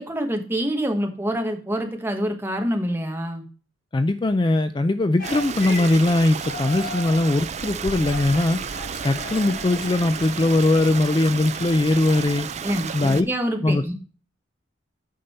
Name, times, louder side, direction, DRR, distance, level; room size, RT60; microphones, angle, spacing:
voice 1, 0.0-3.4 12.6-13.9, equal, 10° right, 3 dB, 1.3 m, -26 dB
voice 2, 3.9-8.6 9.0-12.5 12.9-13.3 13.6-13.9, left 2 dB, 25° left, 11 dB, 0.4 m, -20 dB
sound 1, 5.2-12.3, left 2 dB, 50° left, 4.4 m, -38 dB
Stream, 5.2-13.2, right 6 dB, 35° right, 0.5 m, -32 dB
8.7 x 5.4 x 4.2 m, 0.38 s
head